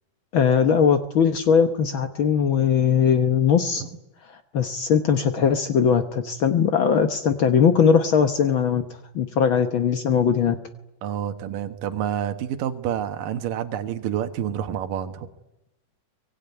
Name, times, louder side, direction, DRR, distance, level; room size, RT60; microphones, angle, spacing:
voice 1, 0.3-3.8 4.5-8.8 9.1-10.5, left 7 dB, 75° left, 8 dB, 1.1 m, -20 dB
voice 2, 11.0-15.3, right 10 dB, 80° right, 7 dB, 2.9 m, -28 dB
24.0 x 24.0 x 9.4 m, 0.94 s
omnidirectional pair, 3.8 m